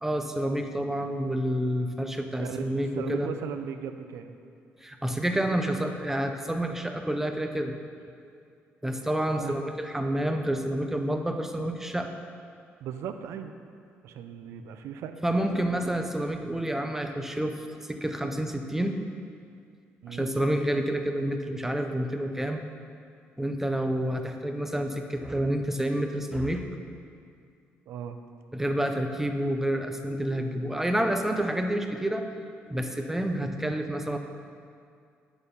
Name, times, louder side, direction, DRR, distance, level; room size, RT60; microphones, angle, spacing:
voice 1, 0.0-3.3 4.8-7.8 8.8-12.1 15.2-19.0 19.3-19.4 20.1-22.6 23.4-26.6 28.5-32.3 32.7-34.2, right 1 dB, 10° right, 5 dB, 0.8 m, -29 dB
voice 2, 2.4-4.3 9.4-9.7 12.8-13.5 14.0-15.2 20.0-20.3 27.9-28.2, right 8 dB, 80° right, 8 dB, 0.6 m, -37 dB
9.0 x 6.7 x 5.4 m, 2.3 s
cardioid pair, 85°, 5 cm